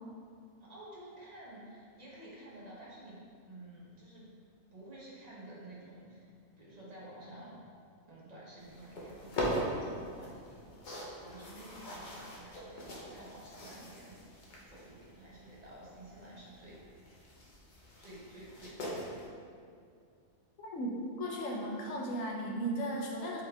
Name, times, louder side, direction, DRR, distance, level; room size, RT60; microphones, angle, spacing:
voice 1, 0.6-3.2 3.5-4.2 4.7-6.3 6.6-7.6 8.1-14.2 14.7-16.8 18.0-19.2, right 1 dB, 35° right, -6 dB, 1.0 m, -51 dB
sound 1, 8.6-19.3, equal, 45° left, 0.7 m, -42 dB
voice 2, 20.6-23.4, right 1 dB, 70° left, -1 dB, 1.1 m, -36 dB
4.7 x 3.1 x 3.4 m, 2.3 s
omnidirectional pair, 1.4 m